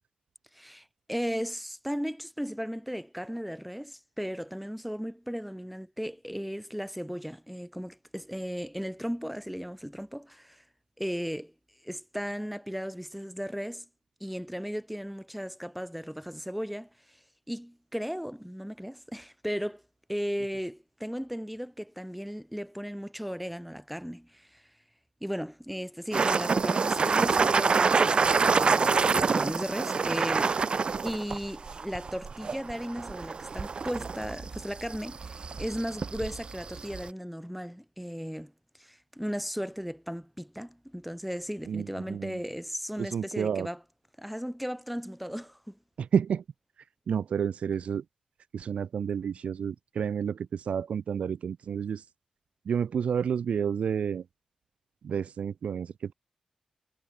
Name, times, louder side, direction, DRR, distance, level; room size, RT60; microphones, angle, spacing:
voice 1, 0.5-10.6 11.0-11.5 11.8-13.8 14.2-16.9 17.5-19.8 20.1-24.6 25.2-30.6 31.0-38.5 38.8-43.8 44.2-45.8, equal, ahead, 7.7 m, -36 dB
sound 1, 26.1-37.1, right 5 dB, 50° right, 5.5 m, -27 dB
voice 2, 41.7-42.4 43.0-43.7 46.0-46.4 47.1-48.0 48.5-52.0 52.6-54.2 55.0-56.1, right 7 dB, 75° right, 1.7 m, -30 dB
cardioid pair, 80°, 2 cm